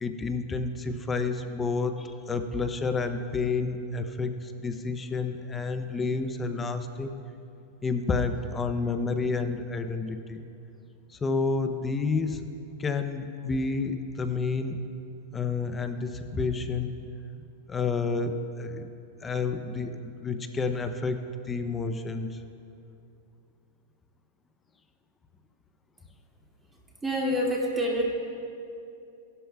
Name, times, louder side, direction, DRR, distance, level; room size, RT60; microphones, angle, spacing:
voice 1, 0.0-7.1 7.8-10.5 11.1-12.5 12.8-14.8 15.3-17.1 17.7-18.9 19.2-22.4, left 4 dB, 15° left, 8 dB, 0.5 m, -30 dB
voice 2, 27.0-28.1, equal, 10° right, -3 dB, 2.3 m, -26 dB
16.5 x 12.0 x 2.3 m, 2.6 s
supercardioid pair, 135°, 0 cm